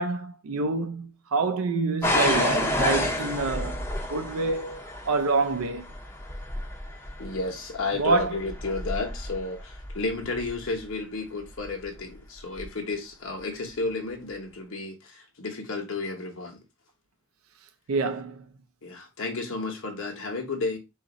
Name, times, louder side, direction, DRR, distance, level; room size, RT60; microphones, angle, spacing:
voice 1, 0.0-3.8 4.1-5.8 7.9-8.4 17.9-18.4, right 3 dB, 70° right, 0.4 m, -27 dB
sound 1, 2.0-10.8 11.6-12.0 12.6-12.7, left 1 dB, 10° left, 0.6 m, -30 dB
voice 2, 7.2-16.6 18.8-20.8, left 3 dB, 60° left, 1.0 m, -32 dB
3.9 x 2.5 x 3.9 m
head